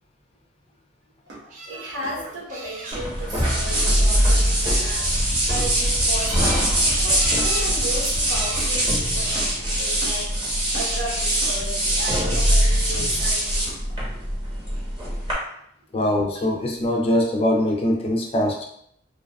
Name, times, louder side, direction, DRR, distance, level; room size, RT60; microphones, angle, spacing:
sound 1, 1.2-14.0, right 1 dB, 65° right, 0.9 m, -44 dB
sound 2, 1.5-1.9 2.5-3.2 6.1-6.7 7.1-7.7 8.2-8.7 9.6-10.1 16.3-16.5 16.8-16.9, right 3 dB, 40° right, 0.4 m, -36 dB
voice 1, 1.7-6.7 7.0-10.3 10.7-13.7, right 1 dB, 90° right, -4 dB, 1.0 m, -34 dB
sound 3, 2.9-15.3, right 1 dB, 25° right, 0.8 m, -22 dB
voice 2, 15.9-18.6, left 1 dB, 30° left, 1 dB, 0.3 m, -22 dB
2.6 x 2.2 x 2.2 m, 0.70 s
head